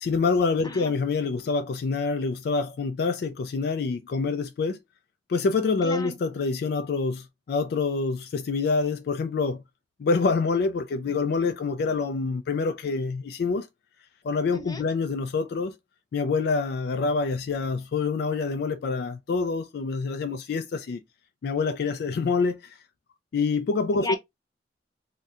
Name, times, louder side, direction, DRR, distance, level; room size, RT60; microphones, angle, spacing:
voice 1, 0.0-4.8 5.3-9.6 10.0-13.7 14.2-15.8 16.1-21.0 21.4-22.8 23.3-24.1, left 4 dB, 60° left, 0.3 m, -26 dB
voice 2, 5.8-6.2 14.5-14.8 23.9-24.1, left 2 dB, 20° left, 0.6 m, -34 dB
3.6 x 2.1 x 2.7 m
head